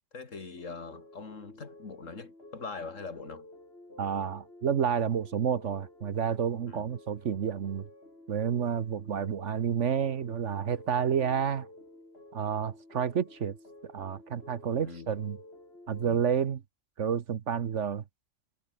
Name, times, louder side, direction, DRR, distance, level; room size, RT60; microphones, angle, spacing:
voice 1, 0.0-3.5 6.7-6.9 14.8-15.1 16.0-16.2, left 4 dB, 85° left, 2.8 m, -42 dB
sound 1, 0.6-16.1, left 1 dB, 55° left, 5.9 m, -52 dB
voice 2, 4.0-7.9 8.3-11.7 12.3-13.5 13.9-15.4 15.9-16.6 17.0-18.0, right 7 dB, 70° right, 1.4 m, -30 dB
omnidirectional pair, 1.3 m